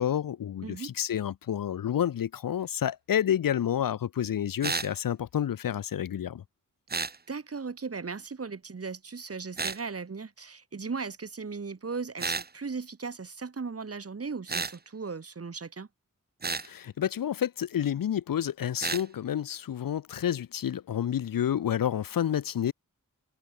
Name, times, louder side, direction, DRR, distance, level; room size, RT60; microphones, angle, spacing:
voice 1, 0.0-6.4 16.6-22.7, left 10 dB, 90° left, 0.6 m, -29 dB
sound 1, 4.6-4.9 6.9-7.2 9.6-9.8 12.2-12.5 14.5-14.8 16.4-16.7 18.8-19.0, right 4 dB, 30° right, 0.7 m, -31 dB
voice 2, 7.3-15.9, right 4 dB, 45° right, 1.4 m, -37 dB
wide cardioid pair, 105°, 33 cm